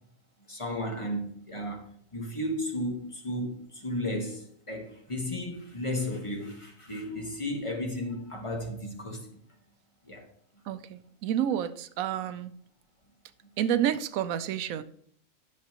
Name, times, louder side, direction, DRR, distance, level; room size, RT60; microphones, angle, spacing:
voice 1, 0.5-9.3 10.1-10.2, left 1 dB, 25° left, 1.2 m, -34 dB
voice 2, 10.7-12.5 13.6-14.8, right 10 dB, 90° right, 1.0 m, -29 dB
10.5 x 6.6 x 2.9 m
omnidirectional pair, 1.4 m